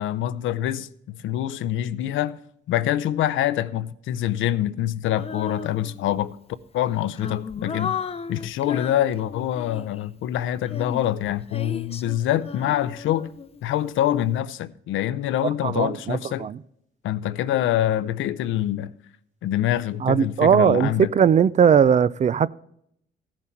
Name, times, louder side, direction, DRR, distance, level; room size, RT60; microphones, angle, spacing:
voice 1, 0.0-2.4 2.7-6.4 6.7-7.9 8.3-13.3 13.6-16.5 17.0-18.9 19.4-21.1, left 12 dB, 80° left, 0.6 m, -25 dB
Female singing, 5.2-6.2 6.8-10.1 10.7-13.8, left 6 dB, 30° left, 0.6 m, -35 dB
voice 2, 15.6-16.6 20.0-22.5, right 8 dB, 35° right, 0.4 m, -19 dB
15.0 x 7.3 x 4.4 m
cardioid pair, 90°, 20 cm